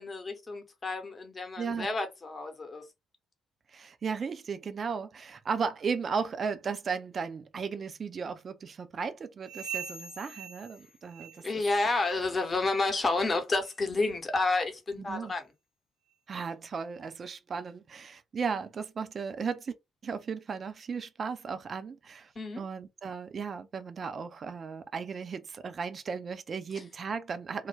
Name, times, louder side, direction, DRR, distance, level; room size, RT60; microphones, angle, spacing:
voice 1, 0.0-2.8 11.4-15.4 22.4-22.6, left 3 dB, 35° left, 0.8 m, -30 dB
voice 2, 1.6-1.9 3.7-11.5 15.0-15.3 16.3-19.7 20.0-27.7, right 5 dB, 45° right, 0.4 m, -35 dB
sound 1, 9.4-11.7 11.9-12.3 12.8-13.0 13.6-13.8 14.4-14.5 15.3-15.4, right 7 dB, 70° right, 0.8 m, -43 dB
2.2 x 2.1 x 3.2 m
figure-of-eight pair, 45°, 0 cm